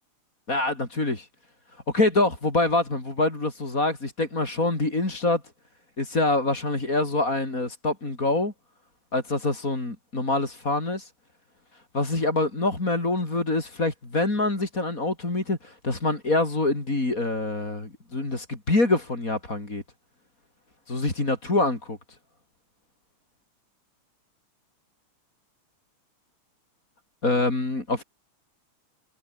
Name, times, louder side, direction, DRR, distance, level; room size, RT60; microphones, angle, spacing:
voice 1, 0.5-1.3 1.9-5.4 6.0-8.5 9.1-11.1 11.7-19.8 20.9-22.0 27.2-28.0, left 2 dB, 25° left, 5.1 m, -25 dB
omnidirectional pair, 3.4 m